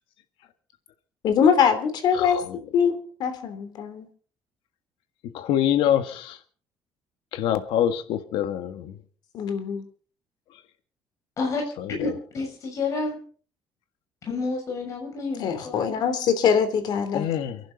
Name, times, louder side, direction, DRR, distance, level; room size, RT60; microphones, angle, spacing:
voice 1, 1.2-2.4 2.7-4.1 9.3-9.8 15.4-17.3, left 7 dB, 55° left, 3.3 m, -23 dB
voice 2, 2.1-2.6 5.3-6.4 7.3-9.0 11.8-12.1 17.1-17.6, left 10 dB, 85° left, 1.6 m, -25 dB
voice 3, 12.0-13.2 14.2-15.9, left 3 dB, 40° left, 6.7 m, -29 dB
29.5 x 11.5 x 4.0 m
cardioid pair, 165°, 9 cm